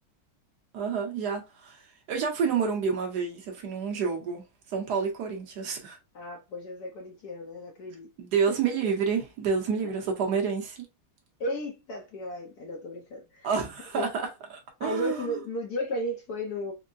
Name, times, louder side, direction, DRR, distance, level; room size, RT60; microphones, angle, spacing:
voice 1, 0.7-4.4 4.7-6.0 8.2-10.9 13.4-14.2 14.5-15.4, right 6 dB, 60° right, 1.2 m, -29 dB
voice 2, 6.1-8.1 8.5-8.6 9.8-9.9 11.4-13.5 13.9-14.1 14.8-16.7, equal, 65° left, 0.9 m, -34 dB
4.5 x 2.1 x 2.5 m
omnidirectional pair, 2.4 m